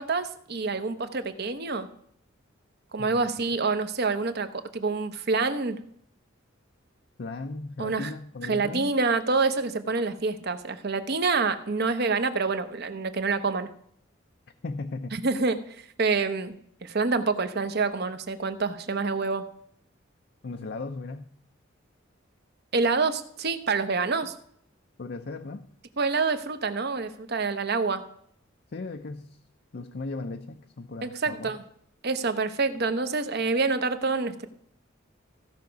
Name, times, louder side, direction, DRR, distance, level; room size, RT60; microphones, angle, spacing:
voice 1, 0.0-1.9 2.9-5.8 7.8-8.1 8.5-13.7 15.1-16.5 16.8-19.4 22.7-24.3 26.0-28.0 31.0-31.6 32.0-34.5, right 4 dB, 55° right, 9 dB, 0.9 m, -27 dB
voice 2, 3.0-3.4 7.2-8.9 14.6-15.2 20.4-21.3 24.2-24.3 25.0-25.7 28.7-29.4 29.7-31.5, left 3 dB, 55° left, 6 dB, 0.6 m, -37 dB
15.5 x 5.8 x 5.2 m, 0.68 s
head